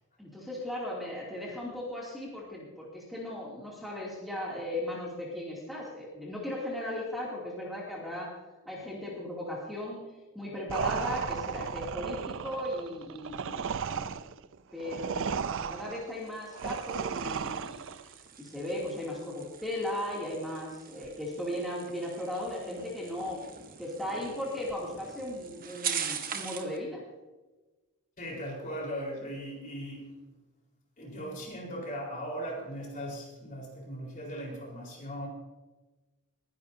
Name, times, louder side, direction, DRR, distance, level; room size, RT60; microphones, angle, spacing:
voice 1, 0.2-8.3 8.6-10.0 10.3-14.2 14.7-17.8 18.4-23.4 23.8-27.0, left 1 dB, ahead, -5 dB, 2.8 m, -37 dB
sound 1, 10.7-18.1, right 6 dB, 60° right, 0.5 m, -34 dB
sound 2, 16.1-26.8, right 8 dB, 40° right, 1.1 m, -42 dB
voice 2, 28.2-30.2 31.0-35.3, equal, 40° left, -2 dB, 4.4 m, -38 dB
21.5 x 10.5 x 2.8 m, 1.2 s
head